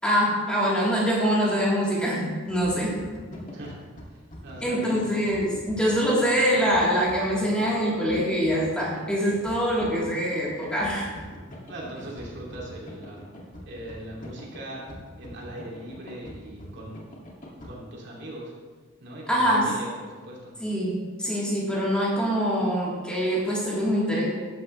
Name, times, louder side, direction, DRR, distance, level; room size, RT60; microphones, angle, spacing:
voice 1, 0.0-3.0 4.6-11.1 19.3-19.7 20.6-24.3, equal, 5° left, -7 dB, 3.4 m, -24 dB
sound 1, 2.5-17.7, equal, 40° left, 2.2 m, -43 dB
voice 2, 4.4-5.0 11.7-13.2 13.7-14.8 15.2-17.0 17.6-18.5 19.0-20.6, right 1 dB, 60° right, -4 dB, 2.6 m, -40 dB
13.5 x 11.0 x 3.2 m, 1.5 s
head